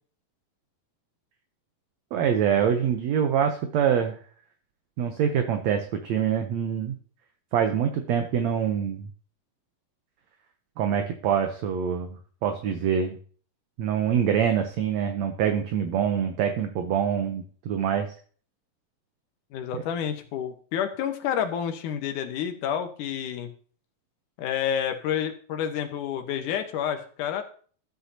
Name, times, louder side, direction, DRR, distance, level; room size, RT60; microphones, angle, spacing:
voice 1, 2.1-4.2 5.0-7.0 7.5-9.1 10.8-13.2 13.8-18.1 19.7-19.8, right 8 dB, 70° right, 6 dB, 1.7 m, -25 dB
voice 2, 19.5-23.5 24.4-27.4, left 9 dB, 70° left, 6 dB, 2.5 m, -29 dB
13.0 x 8.2 x 2.8 m, 0.43 s
omnidirectional pair, 3.9 m